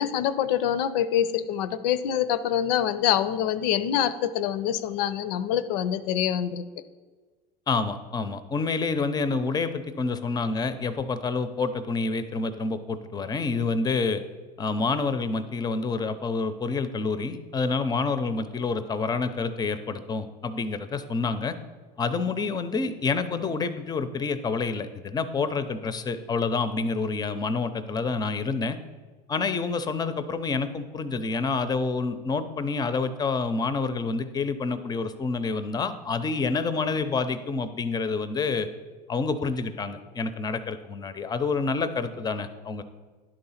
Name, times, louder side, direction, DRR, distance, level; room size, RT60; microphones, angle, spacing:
voice 1, 0.0-6.6, left 10 dB, 80° left, 14 dB, 0.5 m, -25 dB
voice 2, 7.7-14.2 14.6-21.6 22.0-28.8 29.3-38.7 39.1-42.8, left 4 dB, 20° left, 11 dB, 0.5 m, -28 dB
10.5 x 3.9 x 5.6 m, 1.4 s
supercardioid pair, 115°, 21 cm